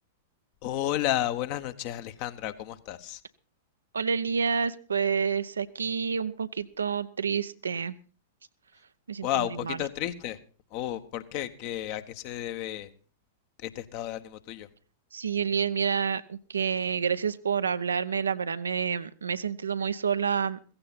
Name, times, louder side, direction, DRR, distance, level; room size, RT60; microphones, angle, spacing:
voice 1, 0.6-3.2 9.2-10.4 10.7-12.9 13.6-14.7, left 13 dB, 45° left, 11 dB, 1.1 m, -32 dB
voice 2, 3.9-8.0 9.1-9.8 15.1-20.6, right 6 dB, 70° right, 13 dB, 0.7 m, -29 dB
15.5 x 15.5 x 4.2 m, 0.39 s
figure-of-eight pair, 95°, 0 cm